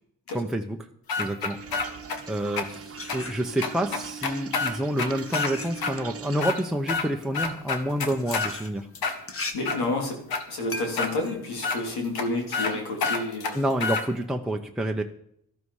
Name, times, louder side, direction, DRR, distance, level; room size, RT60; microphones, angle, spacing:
voice 1, 0.3-0.8 1.2-1.6 1.9-2.0 2.3-8.9 13.5-15.0, right 1 dB, ahead, 2 dB, 1.0 m, -28 dB
sound 1, 1.1-2.2 2.6-2.7 3.1-3.2 3.6-5.5 5.8-5.9 6.3-7.1 7.3-8.5 9.0-9.8 10.3-10.4 11.0-11.1 11.6-11.8 12.2-12.3 12.5-12.7 13.0-14.0, left 4 dB, 70° left, 1.8 m, -28 dB
sound 2, 1.5-6.5, right 6 dB, 35° right, 1.2 m, -40 dB
sound 3, 1.9-3.9 4.6-12.5, left 2 dB, 35° left, 1.7 m, -40 dB
voice 2, 9.5-10.2 10.5-13.7, left 2 dB, 85° left, 1 dB, 3.2 m, -30 dB
13.0 x 12.0 x 4.9 m, 0.71 s
cardioid pair, 65°, 38 cm